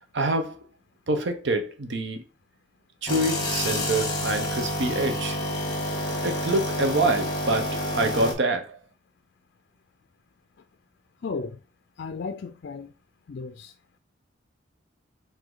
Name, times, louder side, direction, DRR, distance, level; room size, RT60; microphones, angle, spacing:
voice 1, 0.1-0.7 1.1-2.2 3.0-5.4 6.2-8.8, right 2 dB, 65° right, 0.8 m, -26 dB
sound 1, 3.1-8.3, left 1 dB, 25° left, 1.3 m, -28 dB
voice 2, 11.2-11.6 12.0-12.9 13.3-13.7, left 4 dB, 60° left, 0.4 m, -34 dB
4.8 x 2.7 x 3.8 m
head